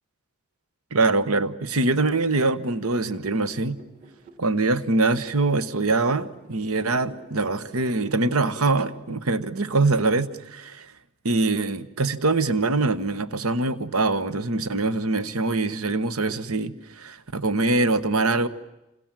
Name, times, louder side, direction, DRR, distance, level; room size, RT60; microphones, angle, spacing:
voice 1, 0.9-3.8 4.4-10.9 11.2-18.5, right 3 dB, 90° right, 14 dB, 1.2 m, -23 dB
sound 1, 2.1-8.9, right 3 dB, 35° right, 2.5 m, -50 dB
29.0 x 27.0 x 7.6 m, 0.93 s
head